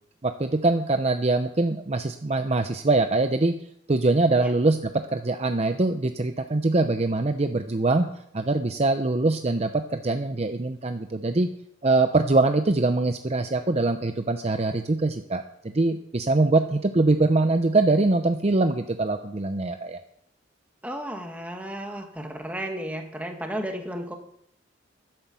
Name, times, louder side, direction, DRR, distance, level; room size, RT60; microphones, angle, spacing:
voice 1, 0.2-3.6 3.9-4.8 5.1-8.1 8.3-11.5 11.8-20.0, right 2 dB, 35° right, 7 dB, 0.6 m, -23 dB
voice 2, 20.8-24.2, equal, 10° right, 4 dB, 1.5 m, -33 dB
11.0 x 9.0 x 7.0 m, 0.72 s
head